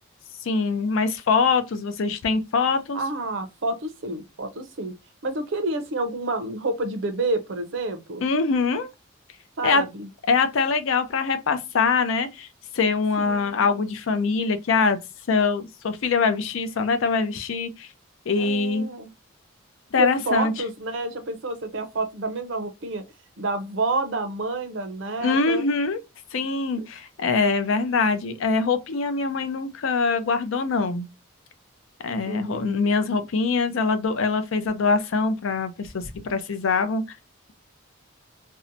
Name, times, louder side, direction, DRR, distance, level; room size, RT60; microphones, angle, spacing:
voice 1, 0.4-3.0 8.2-8.9 9.6-9.8 10.3-12.5 12.7-15.0 15.3-17.9 18.3-18.9 19.9-20.5 25.2-26.0 26.3-31.1 32.0-37.0, left 4 dB, 70° left, 0.5 m, -23 dB
voice 2, 2.9-5.0 5.2-8.2 9.6-10.1 13.2-13.9 18.4-19.1 20.0-23.0 23.4-25.7 26.8-26.9 32.2-32.8, right 2 dB, 65° right, 0.5 m, -29 dB
2.7 x 2.1 x 2.5 m
head